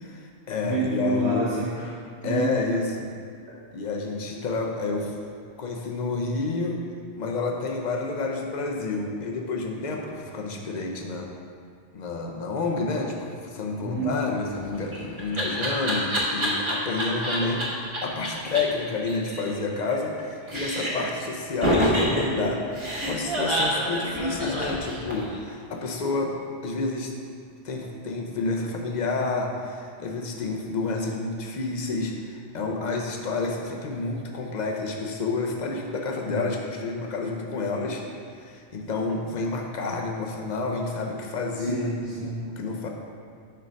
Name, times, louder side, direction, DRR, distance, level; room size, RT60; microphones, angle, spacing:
voice 1, 0.1-1.5 2.2-3.1 3.7-5.1 5.6-6.8 7.2-11.3 11.9-17.6 18.0-26.3 26.6-27.1 27.6-38.0 38.4-41.9 42.6-42.9, left 3 dB, 45° left, 1 dB, 0.8 m, -29 dB
voice 2, 0.6-2.0 2.2-2.5 13.8-14.2 36.3-36.6 41.6-42.4, right 2 dB, 80° right, -8 dB, 1.4 m, -28 dB
Laughter, 14.5-17.6 17.9-18.0 18.2-18.3 18.6-18.7 18.9-20.2 20.5-21.1 21.6-25.4, equal, 30° right, 1.1 m, -27 dB
6.6 x 3.8 x 5.2 m, 2.2 s
omnidirectional pair, 1.1 m